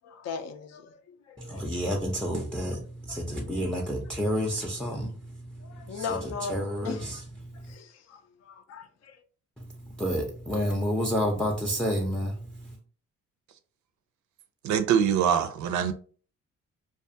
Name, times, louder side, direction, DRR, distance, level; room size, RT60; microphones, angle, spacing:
voice 1, 0.0-1.7 2.7-2.8 3.1-3.7 4.9-5.0 5.6-7.2 7.6-9.2, left 6 dB, 60° left, 0.5 m, -39 dB
voice 2, 1.4-6.2 6.5-7.2 7.4-7.7 9.6-12.8, equal, 5° left, 0.4 m, -30 dB
voice 3, 14.6-15.9, right 8 dB, 70° right, 0.5 m, -24 dB
2.4 x 2.3 x 2.6 m
cardioid pair, 90°, 30 cm